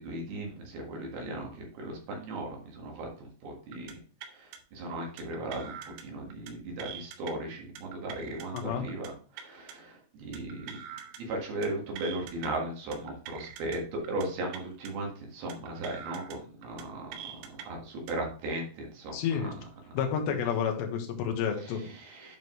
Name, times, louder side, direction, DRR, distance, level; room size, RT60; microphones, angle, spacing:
voice 1, 0.0-3.9 4.3-10.8 11.2-17.1 17.7-19.2 21.9-22.4, right 2 dB, 60° right, 0 dB, 3.3 m, -37 dB
sound 1, 3.7-3.9 4.2-4.6 5.2-6.0 6.3-6.5 6.8-7.3 7.8-8.6 8.9-9.1 9.4-9.7 10.3-11.2 11.5-11.7 12.0-12.5 12.9-13.8 14.0-14.3 14.5-14.9 15.5-16.4 16.6-16.8 17.1-17.6 18.1-18.3, right 8 dB, 85° right, 3.4 m, -44 dB
voice 2, 8.5-8.8 19.1-19.5 19.9-21.8, left 7 dB, 70° left, 3 dB, 3.3 m, -30 dB
9.3 x 5.1 x 3.2 m, 0.42 s
omnidirectional pair, 5.5 m